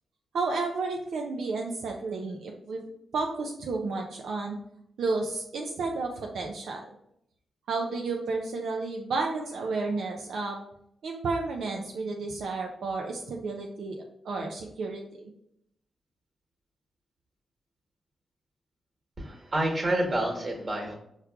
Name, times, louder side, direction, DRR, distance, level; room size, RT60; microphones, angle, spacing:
voice 1, 0.3-2.8 3.1-4.6 5.0-6.8 7.7-10.6 11.0-15.0, right 3 dB, 80° right, 1 dB, 0.4 m, -31 dB
voice 2, 19.2-20.9, right 1 dB, 40° right, 0 dB, 1.2 m, -28 dB
4.5 x 2.3 x 2.3 m, 0.75 s
cardioid pair, 60°, 0 cm